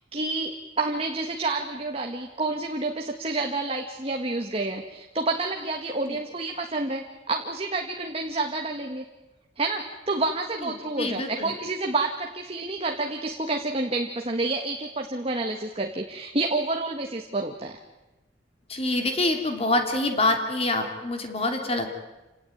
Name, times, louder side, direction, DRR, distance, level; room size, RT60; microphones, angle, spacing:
voice 1, 0.1-9.1 9.6-17.8, right 2 dB, 30° right, 3 dB, 1.7 m, -29 dB
voice 2, 11.0-11.5 18.7-21.9, left 2 dB, 30° left, 5 dB, 3.0 m, -26 dB
28.0 x 18.5 x 9.3 m, 1.1 s
head